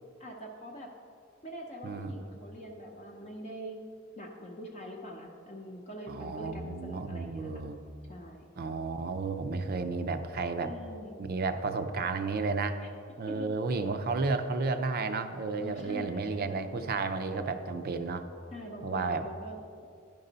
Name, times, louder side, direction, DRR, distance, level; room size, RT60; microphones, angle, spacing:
voice 1, 0.2-0.9 1.4-3.8 4.2-7.6 8.1-8.5 10.6-11.1 12.8-12.9 13.3-13.5 15.6-16.6 17.3-17.6 18.5-19.6, equal, 35° left, -1 dB, 0.7 m, -44 dB
voice 2, 1.8-2.2 6.1-7.8 8.6-10.7 11.2-12.8 13.2-18.2 18.8-19.2, right 4 dB, 45° right, 9 dB, 0.5 m, -32 dB
10.5 x 5.4 x 3.9 m, 2.4 s
head